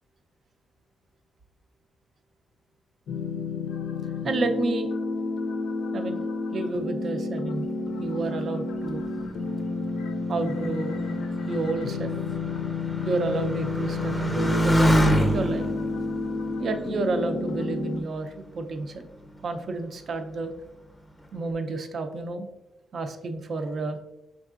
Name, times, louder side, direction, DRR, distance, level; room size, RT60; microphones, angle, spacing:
sound 1, 3.1-18.0, left 3 dB, 85° left, 0.5 m, -31 dB
voice 1, 4.2-4.9 5.9-6.2 6.5-9.1 10.3-11.0 11.5-12.2 13.0-15.7 16.6-19.1 19.4-20.5 21.3-22.5 22.9-24.0, right 3 dB, 40° right, 7 dB, 0.4 m, -30 dB
Motorcycle, 9.0-17.9 18.7-19.3, equal, 5° left, 0.6 m, -28 dB
5.2 x 3.5 x 2.4 m, 0.94 s
wide cardioid pair, 165°, 0 cm